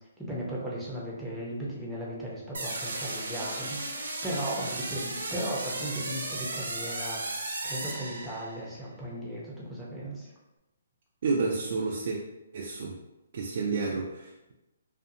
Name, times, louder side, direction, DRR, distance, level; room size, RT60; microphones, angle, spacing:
voice 1, 0.2-10.3, right 1 dB, ahead, -7 dB, 0.6 m, -36 dB
sound 1, 2.5-8.7, right 2 dB, 85° right, 0.8 m, -35 dB
voice 2, 11.2-12.2 12.5-13.0 13.3-14.5, right 4 dB, 55° right, -2 dB, 0.3 m, -30 dB
2.5 x 2.4 x 2.6 m, 0.97 s
hypercardioid pair, 155°, 0 cm